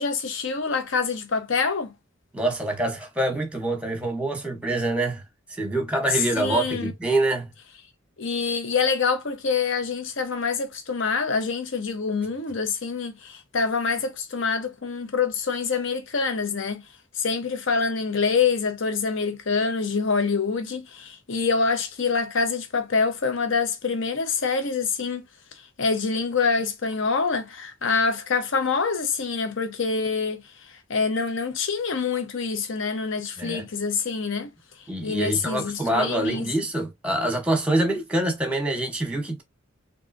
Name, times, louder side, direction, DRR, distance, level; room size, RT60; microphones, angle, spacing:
voice 1, 0.0-1.9 6.1-6.9 8.2-16.8 17.1-25.2 25.8-34.5 35.0-36.5, left 5 dB, 65° left, 0.8 m, -26 dB
voice 2, 2.3-5.2 5.6-7.5 33.4-33.6 34.9-39.4, right 2 dB, 5° right, 1.0 m, -25 dB
3.6 x 2.7 x 2.6 m
head